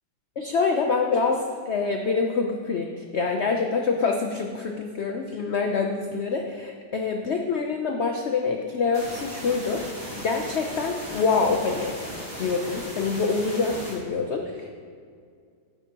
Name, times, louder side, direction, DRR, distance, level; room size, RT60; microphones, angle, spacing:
voice 1, 0.4-9.8 10.2-12.0 12.4-14.7, left 4 dB, 65° left, 3 dB, 0.6 m, -26 dB
sound 1, 8.9-13.9, equal, 25° right, 2.7 m, -37 dB
12.0 x 9.7 x 2.9 m, 2.2 s
omnidirectional pair, 1.9 m